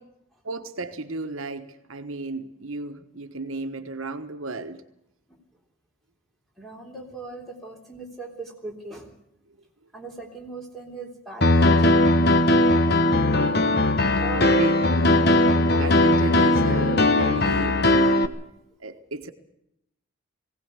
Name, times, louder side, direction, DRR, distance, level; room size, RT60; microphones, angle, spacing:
voice 1, 0.4-4.8 9.5-9.6 14.0-14.8 15.8-18.3 18.8-19.3, right 3 dB, 75° right, 8 dB, 1.3 m, -34 dB
voice 2, 6.6-9.1 9.9-12.0 14.2-14.6 15.2-15.9, right 3 dB, ahead, 0 dB, 3.5 m, -39 dB
Piano, 11.4-18.3, left 1 dB, 45° left, 1.2 m, -19 dB
20.0 x 17.0 x 8.1 m, 0.81 s
head